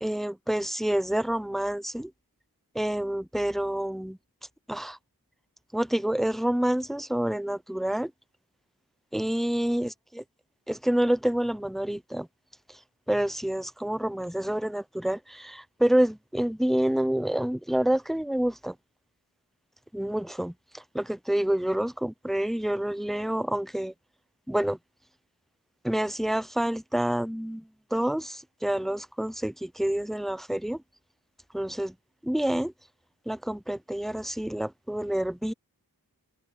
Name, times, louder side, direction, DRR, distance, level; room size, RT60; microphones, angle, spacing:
voice 1, 0.0-2.1 2.7-4.2 4.7-5.0 5.7-8.1 9.1-9.9 10.7-12.3 12.7-12.8 13.1-18.8 19.9-23.9 24.5-24.8 25.8-30.8 31.5-31.9 32.2-32.7 33.3-35.5, right 1 dB, ahead, 0.3 m, -28 dB
wide cardioid pair, 55°, 37 cm